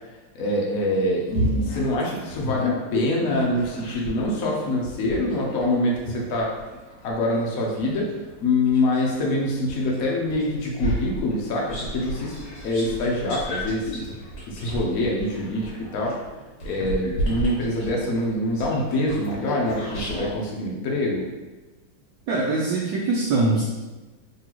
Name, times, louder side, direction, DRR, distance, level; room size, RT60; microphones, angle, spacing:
voice 1, 0.3-6.6 7.0-8.1 8.4-12.3 12.6-14.1 14.5-16.1 16.6-21.3, left 1 dB, 75° left, -2 dB, 0.8 m, -25 dB
sound 1, 1.3-4.3 4.8-9.2 9.7-20.3, equal, 55° left, 1.7 m, -32 dB
voice 2, 22.3-23.6, right 3 dB, 75° right, -3 dB, 1.0 m, -22 dB
3.8 x 3.3 x 2.9 m, 1.2 s
omnidirectional pair, 2.3 m